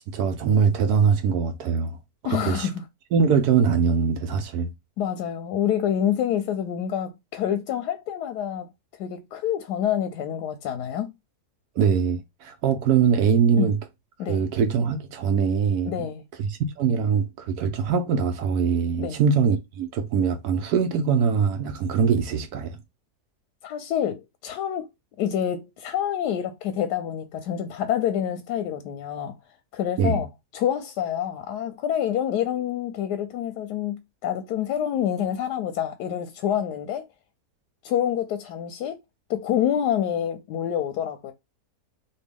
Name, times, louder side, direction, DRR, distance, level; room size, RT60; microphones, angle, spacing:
voice 1, 0.1-2.0 2.3-2.7 3.1-4.7 11.8-13.8 14.3-15.9 16.4-22.8 30.0-30.2, right 6 dB, 75° right, 1.1 m, -22 dB
voice 2, 2.2-2.8 5.0-8.7 9.0-11.1 13.6-13.7 14.2-14.4 15.9-16.2 19.0-19.2 23.6-24.9 25.2-29.3 29.7-30.3 30.5-37.1 37.8-39.0 39.3-41.3, left 10 dB, 90° left, 1.2 m, -27 dB
4.3 x 2.7 x 3.5 m
omnidirectional pair, 1.7 m